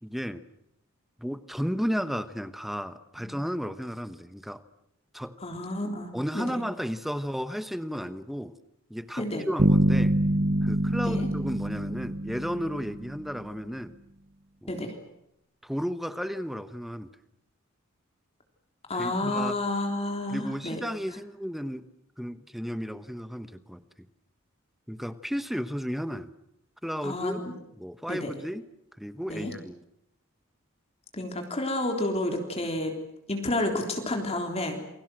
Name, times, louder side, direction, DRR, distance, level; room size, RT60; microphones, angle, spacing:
voice 1, 0.0-0.4 1.2-4.6 5.1-5.3 6.1-8.5 8.9-10.2 10.6-13.9 14.6-14.8 15.6-17.1 18.9-19.6 20.3-21.9 22.2-23.8 24.9-26.3 26.8-27.4 27.8-28.7 29.0-29.8, equal, ahead, 12 dB, 1.0 m, -33 dB
voice 2, 5.4-6.6 9.2-9.5 11.0-11.3 14.7-14.9 18.9-20.8 27.0-27.5 28.1-28.3 29.3-29.5 31.1-32.9 33.3-34.8, left 1 dB, 30° left, 3 dB, 3.5 m, -30 dB
sound 1, 9.6-13.3, right 1 dB, 50° right, 0.9 m, -25 dB
29.0 x 23.0 x 7.7 m, 0.80 s
head